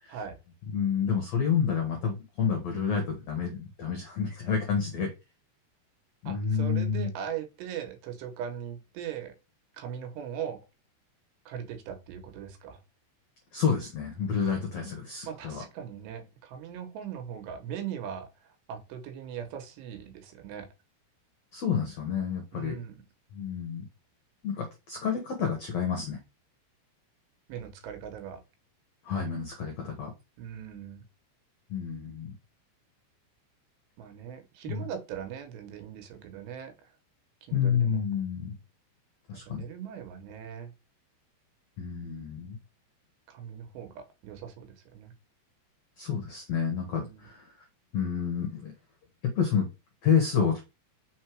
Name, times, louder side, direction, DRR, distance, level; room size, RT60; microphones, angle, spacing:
voice 1, 0.7-5.1 6.2-7.1 13.5-15.6 21.5-22.7 23.3-23.8 24.4-26.2 29.0-30.1 31.7-32.3 34.7-34.8 37.5-38.5 39.3-39.6 41.8-42.6 46.0-47.4 47.9-48.7 49.2-49.7 50.0-50.6, left 7 dB, 80° left, 1.5 m, -29 dB
voice 2, 6.3-9.3 9.8-10.6 11.5-12.8 15.2-20.7 22.5-23.0 27.5-28.4 30.4-31.0 34.0-36.7 37.5-38.0 39.3-40.7 43.3-45.1 47.0-47.3, right 8 dB, 80° right, 3.2 m, -40 dB
6.4 x 3.8 x 4.6 m
omnidirectional pair, 5.0 m